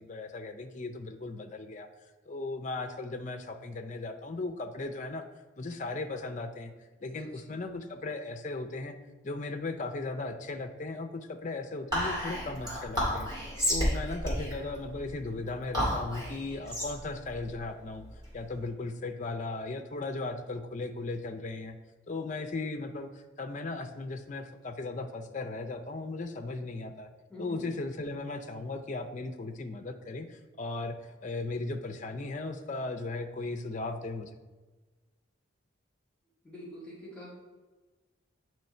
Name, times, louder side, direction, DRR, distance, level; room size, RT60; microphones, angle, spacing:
voice 1, 0.0-1.9 2.3-5.2 5.6-6.7 7.0-9.0 9.2-13.3 13.7-18.1 18.3-21.8 22.1-27.1 27.4-34.4, left 3 dB, 35° left, 6 dB, 0.4 m, -37 dB
Whispering, 11.9-18.6, equal, 20° right, 2.2 m, -32 dB
voice 2, 27.3-27.7 36.4-37.3, equal, 5° left, -8 dB, 1.8 m, -45 dB
8.8 x 3.1 x 4.3 m, 1.2 s
head